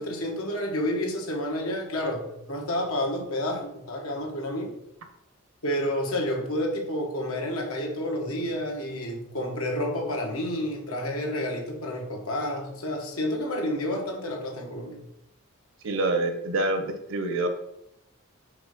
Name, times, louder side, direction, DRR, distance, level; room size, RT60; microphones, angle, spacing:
voice 1, 0.0-4.8 5.6-15.0, left 1 dB, 80° left, 1 dB, 1.4 m, -30 dB
voice 2, 15.8-17.5, right 2 dB, 65° right, 7 dB, 0.9 m, -26 dB
4.9 x 3.8 x 5.2 m, 0.82 s
head